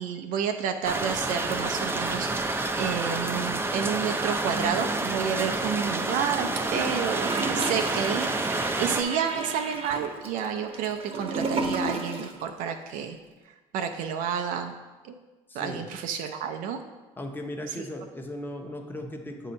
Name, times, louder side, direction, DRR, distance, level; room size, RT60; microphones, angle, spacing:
voice 1, 0.0-2.3 2.8-13.2 13.7-14.7 15.0-15.1 15.5-16.8 17.8-17.9, right 7 dB, 70° right, 5 dB, 0.5 m, -30 dB
sound 1, 0.8-9.0, right 2 dB, 15° right, 0.5 m, -29 dB
Gurgling / Toilet flush, 6.3-12.4 12.7-12.8, right 3 dB, 40° right, 0.9 m, -33 dB
voice 2, 15.5-15.9 17.2-19.5, left 1 dB, 15° left, 3 dB, 0.9 m, -37 dB
7.4 x 2.7 x 5.2 m, 1.2 s
supercardioid pair, 70°, 15 cm